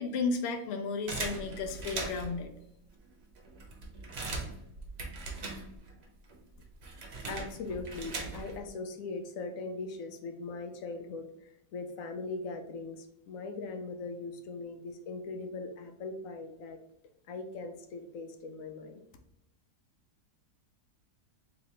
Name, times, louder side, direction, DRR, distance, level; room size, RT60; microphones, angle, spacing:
voice 1, 0.0-2.5, left 4 dB, 85° left, 4 dB, 0.5 m, -33 dB
sound 1, 1.1-2.4 3.1-3.2 3.4-6.0 6.3-8.7, right 3 dB, 50° right, 0.9 m, -39 dB
voice 2, 7.2-16.8 17.3-19.0, left 3 dB, 65° left, 5 dB, 0.9 m, -40 dB
3.3 x 3.0 x 4.2 m, 0.78 s
omnidirectional pair, 1.8 m